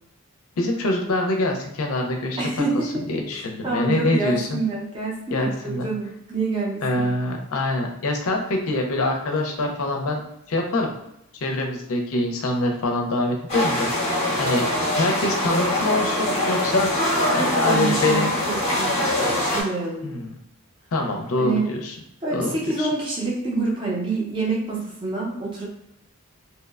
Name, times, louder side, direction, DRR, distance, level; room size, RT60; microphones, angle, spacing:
voice 1, 0.6-2.4 2.9-4.6 5.3-5.9 6.8-10.2 10.5-10.9 11.4-14.6 15.0-16.9 17.3-18.4 20.0-20.3 20.9-21.9 22.3-22.5 22.8-22.9, left 2 dB, 70° left, 2 dB, 0.5 m, -25 dB
voice 2, 2.4-3.0 3.6-7.2 17.3-20.1 21.4-21.7 22.2-25.6, right 3 dB, 20° right, -4 dB, 0.5 m, -27 dB
sound 1, 13.5-19.6, left 1 dB, 30° left, 0.7 m, -23 dB
2.8 x 2.0 x 2.3 m, 0.80 s
head